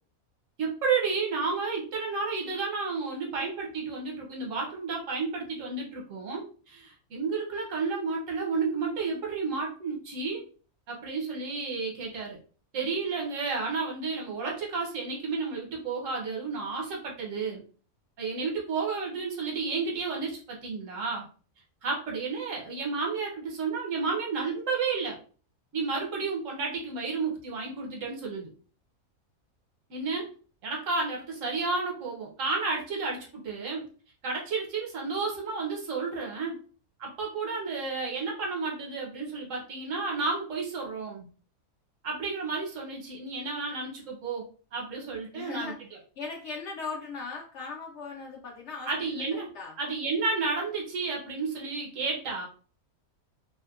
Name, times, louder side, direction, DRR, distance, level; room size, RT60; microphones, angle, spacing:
voice 1, 0.6-10.5 10.9-12.4 12.7-17.6 18.2-21.3 21.8-25.2 25.7-28.5 29.9-30.3 30.6-33.9 34.2-36.6 37.0-41.2 42.0-44.4 44.7-45.7 48.9-49.5 49.8-52.5, right 4 dB, 65° right, -1 dB, 1.1 m, -31 dB
voice 2, 45.3-45.8 46.2-49.8, left 4 dB, 65° left, -1 dB, 0.7 m, -39 dB
2.7 x 2.1 x 2.3 m, 0.39 s
omnidirectional pair, 1.5 m